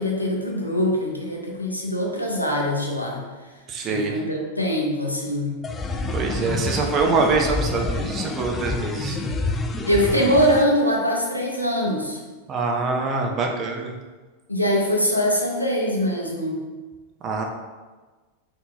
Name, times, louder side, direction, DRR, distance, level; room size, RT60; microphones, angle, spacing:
voice 1, 0.0-3.2 3.8-5.6 9.9-12.2 14.5-16.6, equal, 90° left, -1 dB, 0.7 m, -23 dB
voice 2, 3.7-4.2 6.1-9.2 12.5-13.9 17.2-17.4, right 4 dB, 30° right, 2 dB, 0.6 m, -24 dB
sound 1, 5.6-10.6, left 2 dB, 20° left, 0.4 m, -28 dB
3.8 x 2.7 x 4.0 m, 1.3 s
figure-of-eight pair, 90°, 0 cm